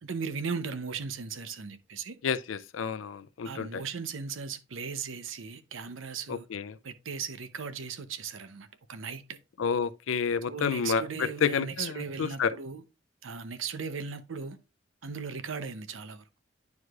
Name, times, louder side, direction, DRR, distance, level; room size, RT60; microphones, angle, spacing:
voice 1, 0.0-2.2 3.4-6.5 6.8-9.4 10.5-12.8 13.2-14.6 15.0-16.2, right 5 dB, 80° right, 0.7 m, -37 dB
voice 2, 2.2-3.8 6.3-6.8 9.6-12.5, left 6 dB, 80° left, 0.4 m, -30 dB
9.5 x 4.7 x 2.4 m
head